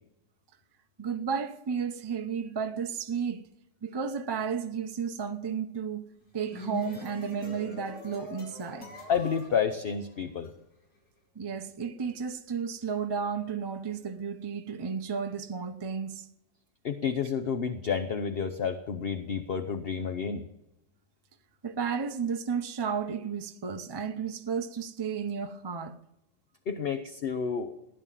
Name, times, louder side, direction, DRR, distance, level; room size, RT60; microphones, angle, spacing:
voice 1, 1.0-3.5 3.8-8.9 11.3-16.3 21.6-26.0, right 6 dB, 25° right, 0.5 m, -33 dB
sound 1, 6.2-10.5, left 1 dB, 90° left, 4.2 m, -44 dB
voice 2, 9.1-10.5 16.8-20.4 26.7-27.7, left 6 dB, 45° left, 0.9 m, -30 dB
16.5 x 10.5 x 7.5 m
omnidirectional pair, 1.7 m